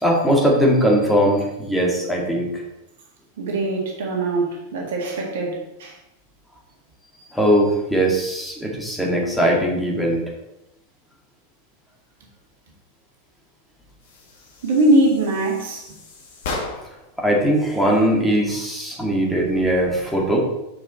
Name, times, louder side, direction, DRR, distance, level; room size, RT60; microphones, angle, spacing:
voice 1, 0.0-2.5 7.3-10.2 17.2-20.4, equal, ahead, -3 dB, 1.9 m, -20 dB
voice 2, 3.4-6.0 14.6-15.9, right 1 dB, 60° right, -1 dB, 1.7 m, -21 dB
sound 1, 14.0-17.1, left 3 dB, 55° left, 1.5 m, -35 dB
6.9 x 5.8 x 4.2 m, 0.89 s
figure-of-eight pair, 90°, 0 cm